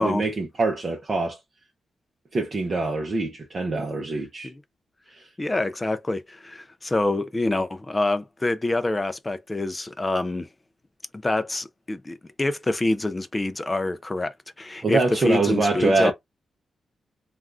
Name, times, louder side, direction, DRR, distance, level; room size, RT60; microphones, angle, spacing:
voice 1, 0.0-1.4 2.3-4.5 14.8-16.1, right 3 dB, 35° right, 0.6 m, -24 dB
voice 2, 5.4-10.5 11.1-16.1, left 2 dB, 15° left, 0.4 m, -26 dB
3.4 x 2.4 x 2.4 m
wide cardioid pair, 145°, 0 cm